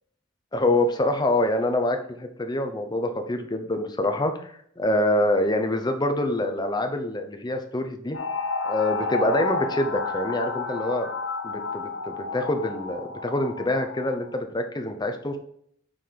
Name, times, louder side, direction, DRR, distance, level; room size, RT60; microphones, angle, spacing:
voice 1, 0.5-8.2 8.6-11.1 11.4-15.4, left 1 dB, 20° left, 6 dB, 0.6 m, -25 dB
sound 1, 8.1-14.3, left 3 dB, 85° left, 0.7 m, -31 dB
5.6 x 5.5 x 3.3 m, 0.66 s
head